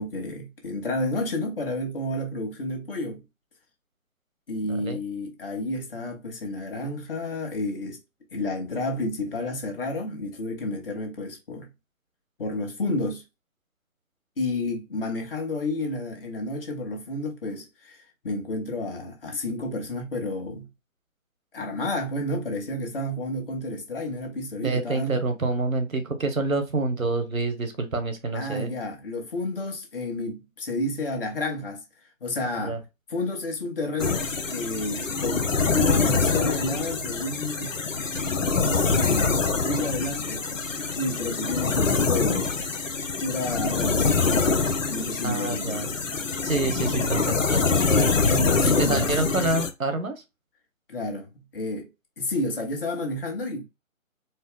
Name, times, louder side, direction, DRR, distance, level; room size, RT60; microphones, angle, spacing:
voice 1, 0.0-3.2 4.5-8.0 8.3-11.7 12.4-13.2 14.4-20.7 21.5-25.3 28.3-31.8 32.2-32.8 33.1-37.8 38.6-40.5 40.9-42.6 43.2-46.0 48.3-49.1 50.9-51.9 52.2-53.6, left 2 dB, 45° left, 1.3 m, -31 dB
voice 2, 4.6-5.0 24.6-28.7 32.6-32.8 45.2-45.9 46.4-48.2 48.6-50.2, right 3 dB, 80° right, 1.3 m, -27 dB
sound 1, 34.0-49.7, left 4 dB, 70° left, 0.9 m, -25 dB
4.3 x 2.0 x 3.7 m
figure-of-eight pair, 140°, 41 cm